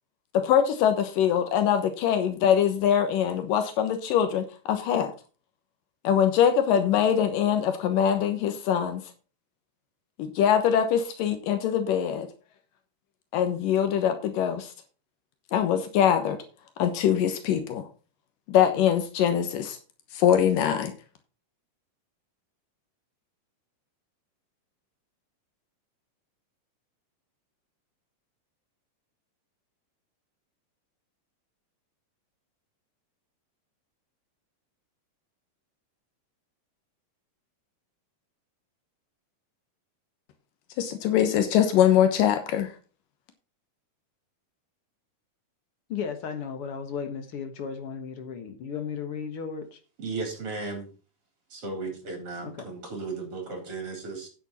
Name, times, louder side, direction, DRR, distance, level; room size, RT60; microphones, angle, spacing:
voice 1, 0.4-5.1 6.0-9.0 10.2-12.3 13.3-14.7 15.5-16.4 16.8-17.8 18.5-19.8 20.1-20.9 40.8-42.7, left 9 dB, 85° left, 2.8 m, -23 dB
voice 2, 45.9-49.8 52.4-52.7, left 6 dB, 50° left, 1.9 m, -35 dB
voice 3, 50.0-50.9 51.5-54.3, right 3 dB, 45° right, 4.6 m, -35 dB
9.3 x 9.0 x 4.2 m
omnidirectional pair, 3.8 m